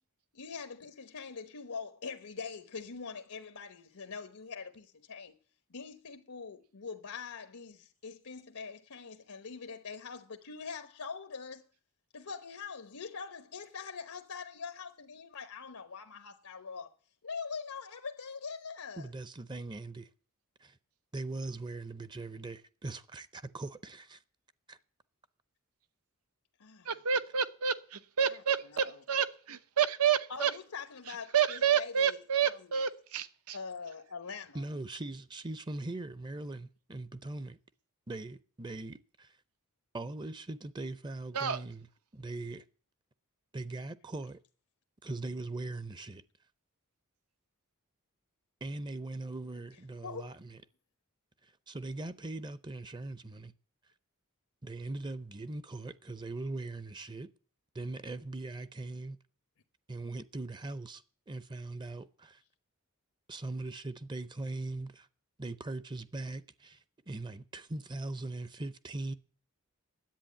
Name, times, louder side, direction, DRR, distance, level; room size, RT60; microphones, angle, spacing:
voice 1, 0.3-5.3 5.7-11.6 12.1-16.9 17.2-19.1 26.6-26.9 28.7-28.9 30.3-32.2 32.4-32.6 33.5-34.6 50.0-50.3, left 5 dB, 90° left, 1.0 m, -43 dB
voice 2, 19.0-20.1 20.6-20.8 21.1-24.2 24.7-24.8 34.5-37.6 38.1-39.4 39.9-41.9 42.1-42.6 43.5-44.4 45.0-46.2 48.6-50.6 51.4-53.5 54.6-57.3 57.7-59.2 59.9-62.4 63.3-65.1 65.4-69.1, right 2 dB, 20° right, 0.6 m, -40 dB
voice 3, 26.8-30.5 31.1-33.6 41.3-41.6, right 8 dB, 85° right, 1.0 m, -29 dB
10.5 x 8.5 x 8.5 m
head